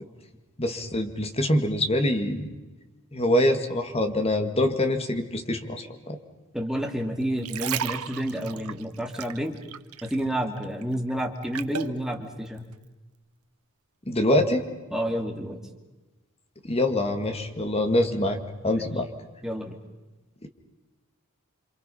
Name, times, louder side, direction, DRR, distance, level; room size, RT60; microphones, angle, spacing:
voice 1, 0.6-2.5 3.1-6.2 14.1-14.6 16.6-18.4 18.6-19.1 20.4-20.5, left 1 dB, 30° left, 6 dB, 2.1 m, -24 dB
voice 2, 6.5-9.6 10.0-12.6 14.9-15.6 18.7-18.8 19.4-19.8, equal, ahead, 2 dB, 2.3 m, -30 dB
sound 1, 7.2-10.3 10.6-12.0 12.6-12.7, right 9 dB, 90° right, 1.0 m, -34 dB
28.0 x 26.5 x 5.6 m, 1.2 s
head